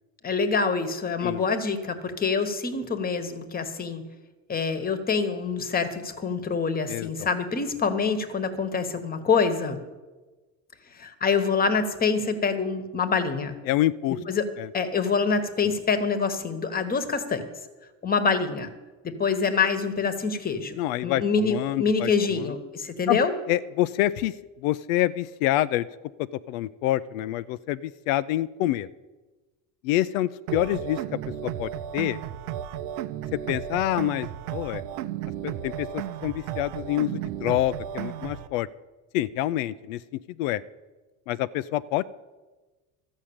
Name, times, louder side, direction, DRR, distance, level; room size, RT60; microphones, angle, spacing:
voice 1, 0.2-4.0 4.5-9.8 11.0-13.6 14.3-14.4 14.7-17.4 18.0-18.7 19.0-23.3, left 5 dB, 25° left, 10 dB, 1.2 m, -26 dB
voice 2, 6.9-7.3 13.7-14.2 14.6-14.7 20.8-22.5 23.1-23.2 23.5-25.9 26.2-28.9 29.8-31.0 31.4-32.2 33.3-34.8 35.4-38.7 39.1-40.0 40.4-40.6 41.3-42.0, left 14 dB, 85° left, 15 dB, 0.5 m, -27 dB
sound 1, 30.5-38.5, right 11 dB, 80° right, 0.8 m, -34 dB
13.0 x 6.3 x 8.6 m, 1.2 s
supercardioid pair, 120°, 39 cm